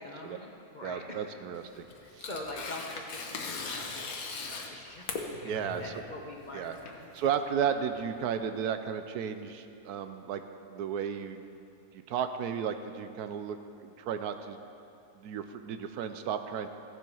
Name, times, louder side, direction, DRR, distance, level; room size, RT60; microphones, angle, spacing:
voice 1, 0.0-1.3 2.0-7.1, left 1 dB, 35° left, 0 dB, 0.9 m, -44 dB
voice 2, 0.8-1.8 2.1-2.3 5.4-5.9 6.5-6.8 7.1-10.4 10.7-11.4 11.9-14.6 15.2-16.7, right 8 dB, 80° right, 9 dB, 1.2 m, -34 dB
Tearing, 1.5-8.3, left 4 dB, 70° left, 1.5 m, -40 dB
15.0 x 7.5 x 5.6 m, 2.6 s
omnidirectional pair, 1.6 m